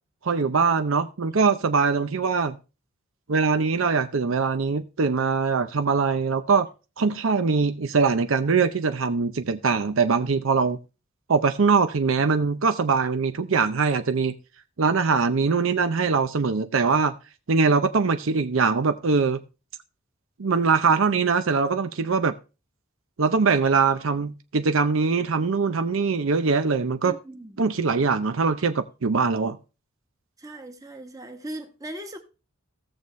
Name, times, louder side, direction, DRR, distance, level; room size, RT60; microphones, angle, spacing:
voice 1, 0.2-2.6 3.3-6.7 7.0-10.8 11.3-14.4 14.8-17.1 17.5-19.4 20.4-22.3 23.2-27.1 27.6-29.6, right 5 dB, 70° right, 0.6 m, -22 dB
voice 2, 27.1-27.6 30.4-32.2, right 1 dB, 15° right, 1.2 m, -39 dB
16.0 x 6.9 x 3.1 m
head